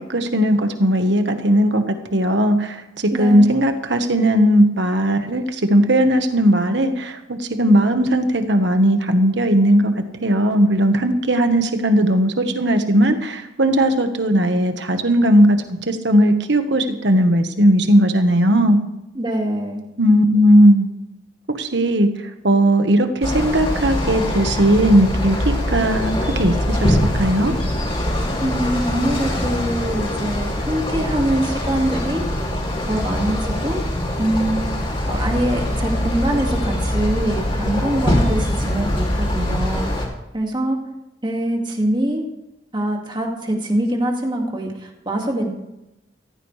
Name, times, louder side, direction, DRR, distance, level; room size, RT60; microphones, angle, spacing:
voice 1, 0.1-2.8 3.2-9.9 10.2-15.6 15.9-18.8 20.0-20.9 21.6-22.1 22.4-27.5, equal, 70° right, 7 dB, 1.4 m, -17 dB
voice 2, 3.1-3.6 19.1-19.8 28.4-32.2 32.9-33.8 34.2-34.7 35.0-40.1 40.3-40.8 41.2-42.2 42.7-45.5, right 1 dB, 25° right, 1 dB, 2.1 m, -23 dB
sound 1, 23.2-40.1, left 1 dB, 30° left, 2.8 m, -23 dB
16.0 x 15.0 x 3.3 m, 0.92 s
head